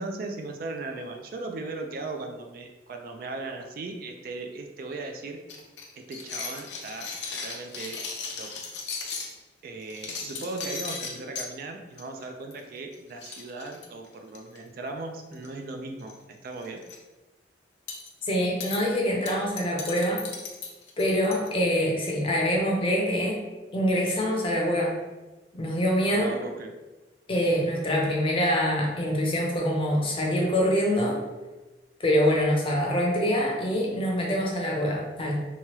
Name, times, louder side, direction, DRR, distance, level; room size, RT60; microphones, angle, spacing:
voice 1, 0.0-5.4 6.0-7.1 7.4-8.0 8.3-8.5 9.6-16.8 26.1-26.7, right 3 dB, 55° right, 4 dB, 0.3 m, -37 dB
sound 1, 5.5-9.3 9.8-11.5 12.0-12.2 12.5-12.6 12.9-13.0 13.2-14.6 15.3-15.7 16.0-16.2 16.5-17.0 17.9-18.1 18.6-18.8 19.3-21.5, left 5 dB, 80° left, 0.5 m, -36 dB
voice 2, 18.2-20.2 21.0-23.4 23.7-24.9 25.5-26.3 27.3-31.2 32.0-35.4, equal, 30° left, -2 dB, 0.6 m, -25 dB
3.0 x 2.2 x 2.9 m, 1.1 s
head